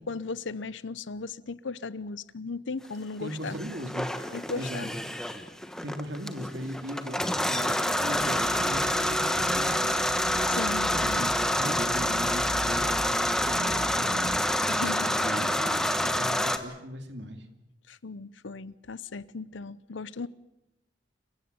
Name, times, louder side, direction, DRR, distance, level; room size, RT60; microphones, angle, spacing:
voice 1, 0.1-3.6 4.3-4.9 10.5-11.3 14.7-15.1 17.9-20.3, left 4 dB, 80° left, 0.7 m, -36 dB
voice 2, 3.2-4.1 4.6-4.9 5.8-10.6 10.9-12.9 13.4-17.5, equal, 65° right, 2.6 m, -38 dB
sound 1, 3.5-16.6, left 1 dB, 5° left, 1.2 m, -27 dB
sound 2, 8.2-14.4, right 1 dB, 85° right, 1.3 m, -40 dB
27.5 x 16.0 x 8.0 m
head